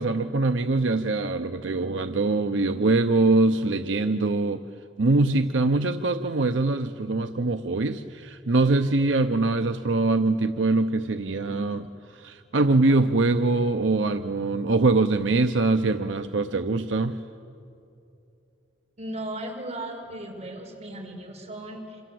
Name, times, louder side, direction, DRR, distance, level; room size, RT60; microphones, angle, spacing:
voice 1, 0.0-4.6 5.0-11.9 12.1-17.2, right 3 dB, 80° right, 7 dB, 0.8 m, -23 dB
voice 2, 19.0-22.0, right 1 dB, 40° right, -1 dB, 5.6 m, -36 dB
27.5 x 27.0 x 7.8 m, 2.7 s
head